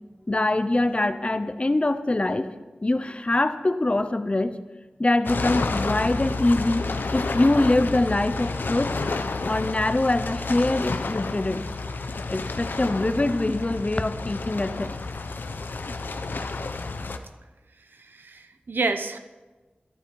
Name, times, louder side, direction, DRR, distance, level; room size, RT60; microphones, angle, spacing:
voice 1, 0.3-2.5 2.8-4.6 5.0-8.9 9.5-11.7 12.3-14.9, left 2 dB, 35° left, 11 dB, 0.8 m, -24 dB
sound 1, 5.2-17.2, left 3 dB, 85° left, 0.8 m, -30 dB
voice 2, 18.0-19.2, right 3 dB, 85° right, 8 dB, 0.8 m, -29 dB
13.0 x 12.0 x 4.7 m, 1.2 s
wide cardioid pair, 70°, 3 cm